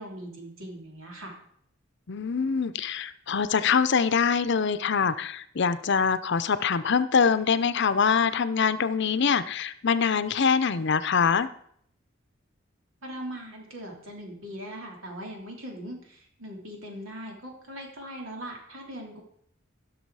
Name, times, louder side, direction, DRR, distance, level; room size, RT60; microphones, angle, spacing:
voice 1, 0.0-1.4 13.0-19.2, equal, 90° right, 0 dB, 3.2 m, -40 dB
voice 2, 2.1-11.5, left 6 dB, 60° left, 13 dB, 0.6 m, -24 dB
15.5 x 6.3 x 4.8 m, 0.67 s
head